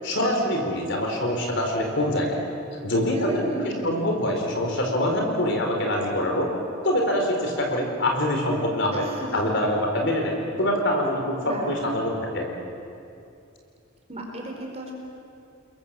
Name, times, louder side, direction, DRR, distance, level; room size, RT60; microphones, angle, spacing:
voice 1, 0.0-2.4 2.8-6.5 6.8-9.1 9.3-11.4 11.7-12.5, left 1 dB, 55° left, 2 dB, 4.5 m, -24 dB
voice 2, 3.1-4.1 8.9-9.4 11.4-11.8 14.1-14.9, right 1 dB, 30° right, 0 dB, 4.5 m, -33 dB
29.5 x 22.0 x 7.7 m, 2.6 s
head